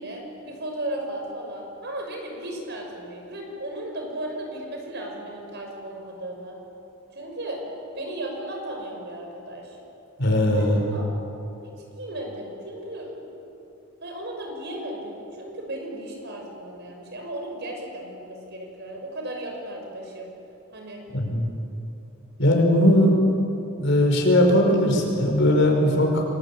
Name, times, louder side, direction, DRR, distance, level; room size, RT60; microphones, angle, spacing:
voice 1, 0.0-6.6 7.1-7.6 7.9-9.8 10.5-11.1 11.3-11.4 11.9-13.2 14.0-20.3 20.7-21.0, right 1 dB, 55° right, 1 dB, 6.3 m, -35 dB
voice 2, 10.2-10.9 21.1-21.5 22.4-23.1 23.8-26.3, left 1 dB, 60° left, 2 dB, 5.5 m, -19 dB
28.0 x 22.0 x 8.8 m, 2.9 s
head